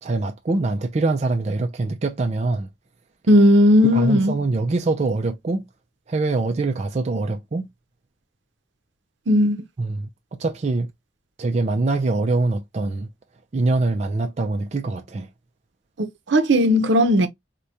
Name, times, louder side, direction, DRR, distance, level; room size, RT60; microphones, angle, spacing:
voice 1, 0.0-2.7 3.8-5.7 6.1-7.7 9.8-10.9 11.4-13.1 13.5-15.3, right 3 dB, 35° right, 0.4 m, -24 dB
voice 2, 3.3-4.3 9.3-9.6 16.3-17.3, left 1 dB, 70° right, 0.7 m, -16 dB
4.7 x 2.2 x 2.7 m
head